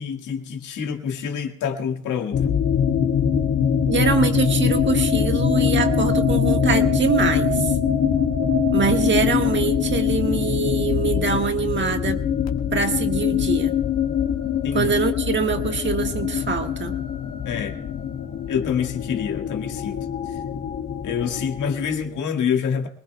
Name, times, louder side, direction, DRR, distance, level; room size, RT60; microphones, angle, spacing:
voice 1, 0.0-2.6 14.6-14.9 17.4-17.8 18.5-20.1 21.0-22.9, left 7 dB, 80° left, 1.8 m, -26 dB
sound 1, 2.3-22.2, left 7 dB, 60° left, 1.7 m, -23 dB
voice 2, 3.8-7.7 8.7-12.2 12.7-13.7 14.7-16.9, right 5 dB, 40° right, 1.5 m, -24 dB
25.0 x 19.5 x 2.3 m
cardioid pair, 90°, 30 cm